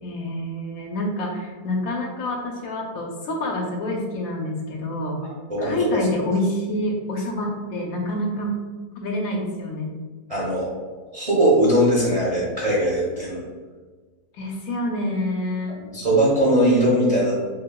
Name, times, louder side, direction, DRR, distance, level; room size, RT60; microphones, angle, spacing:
voice 1, 0.0-5.2 5.6-8.6 9.0-9.9 14.3-15.8, left 1 dB, 70° left, 0 dB, 1.0 m, -27 dB
voice 2, 10.3-10.7 11.1-13.4 15.8-17.3, right 1 dB, 35° right, -6 dB, 0.6 m, -20 dB
6.1 x 2.2 x 2.2 m, 1.4 s
omnidirectional pair, 1.7 m